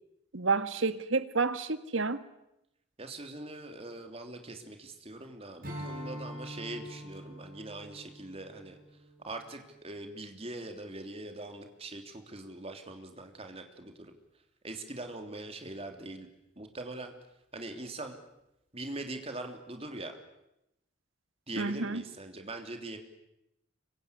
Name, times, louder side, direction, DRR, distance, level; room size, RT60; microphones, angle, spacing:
voice 1, 0.3-2.2 21.6-22.0, right 4 dB, 90° right, 12 dB, 1.7 m, -29 dB
voice 2, 3.0-14.1 14.6-16.3 16.5-17.1 17.5-18.2 18.7-20.2 21.5-23.0, right 2 dB, 30° right, 4 dB, 3.2 m, -42 dB
Strum, 5.6-10.3, equal, 45° right, 7.2 m, -45 dB
26.0 x 23.5 x 9.9 m, 0.85 s
head